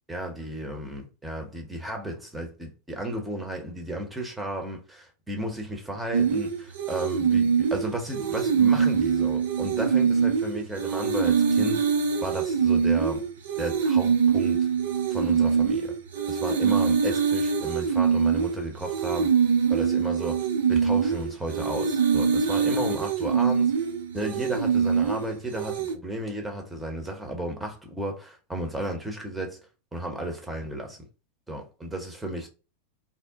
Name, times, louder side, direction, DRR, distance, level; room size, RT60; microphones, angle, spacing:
voice 1, 0.1-11.9 12.2-13.2 13.6-14.7 15.1-15.9 16.3-19.3 19.7-23.8 24.1-29.6 29.9-31.0 31.5-32.5, right 1 dB, 5° right, 0.9 m, -34 dB
sound 1, 6.1-26.0, right 6 dB, 60° right, 0.5 m, -24 dB
2.7 x 2.0 x 3.6 m
figure-of-eight pair, 90°, 0 cm